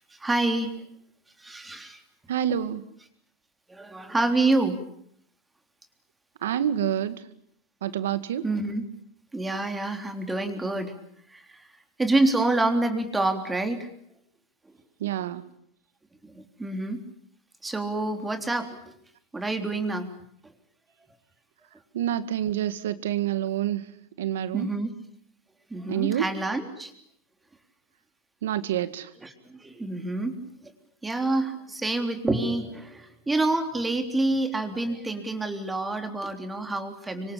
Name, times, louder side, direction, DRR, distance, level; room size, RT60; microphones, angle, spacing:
voice 1, 0.1-0.7 1.4-2.0 3.7-4.8 8.4-8.8 9.3-11.0 11.3-11.7 12.0-13.9 16.2-17.0 17.6-18.8 19.3-20.1 24.5-24.9 25.7-26.9 29.2-30.4 31.0-37.3, right 2 dB, 10° right, 6 dB, 3.5 m, -27 dB
voice 2, 2.3-2.8 6.4-7.2 7.8-8.4 15.0-15.4 21.9-23.8 24.2-24.7 25.9-26.2 28.4-29.1, right 11 dB, 85° right, 13 dB, 2.1 m, -27 dB
26.0 x 24.5 x 8.7 m, 0.69 s
supercardioid pair, 135°, 0 cm